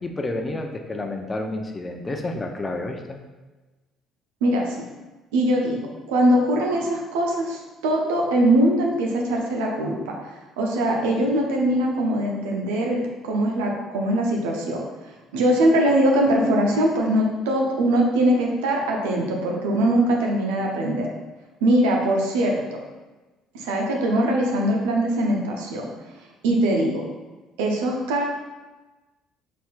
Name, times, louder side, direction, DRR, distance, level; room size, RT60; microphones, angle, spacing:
voice 1, 0.0-3.2, left 2 dB, 25° left, 4 dB, 0.6 m, -30 dB
voice 2, 4.4-4.8 5.3-10.1 10.6-14.8 15.3-21.1 21.6-22.8 23.5-25.9 26.4-27.0 27.6-28.3, right 1 dB, 75° right, 0 dB, 0.6 m, -22 dB
4.3 x 4.3 x 2.4 m, 1.2 s
hypercardioid pair, 55°, 0 cm